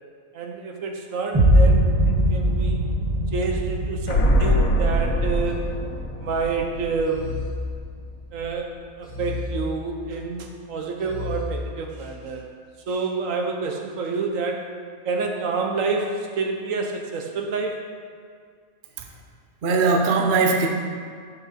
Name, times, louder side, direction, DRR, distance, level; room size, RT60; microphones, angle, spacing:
voice 1, 0.3-2.8 3.3-5.7 6.2-7.4 8.3-12.4 12.9-14.7 15.0-17.8, right 4 dB, 70° right, 2 dB, 1.2 m, -28 dB
sound 1, 1.3-7.3, right 1 dB, 15° right, 1.7 m, -22 dB
sound 2, 4.1-7.8 8.1-8.2, equal, 70° left, 1.2 m, -23 dB
sound 3, 5.4-6.4 7.1-8.4 9.0-10.3 11.0-12.2, left 3 dB, 5° left, 1.2 m, -34 dB
voice 2, 19.6-20.7, right 4 dB, 50° right, 2 dB, 0.7 m, -20 dB
7.6 x 5.8 x 4.2 m, 2.1 s
omnidirectional pair, 1.5 m